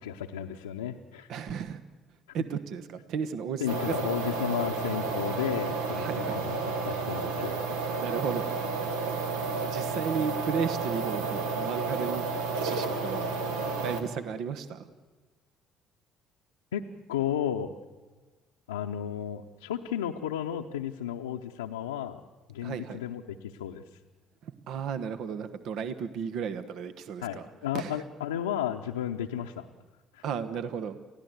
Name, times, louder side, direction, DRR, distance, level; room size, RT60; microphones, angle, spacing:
voice 1, 0.0-1.3 3.6-6.6 6.8-7.6 16.7-16.8 17.1-17.7 18.7-22.2 22.5-23.2 23.6-23.8 27.2-29.7 30.1-30.2, left 10 dB, 80° left, 1 dB, 0.7 m, -33 dB
voice 2, 1.3-1.8 2.3-3.9 6.0-6.4 8.0-8.6 9.6-12.3 12.6-13.3 13.8-14.9 22.6-23.0 24.4-27.5 27.7-28.0 30.2-31.0, right 6 dB, 60° right, 11 dB, 1.2 m, -34 dB
sound 1, 3.7-14.0, right 4 dB, 75° right, 2.0 m, -31 dB
29.0 x 16.0 x 8.1 m, 1.3 s
figure-of-eight pair, 50°, 0 cm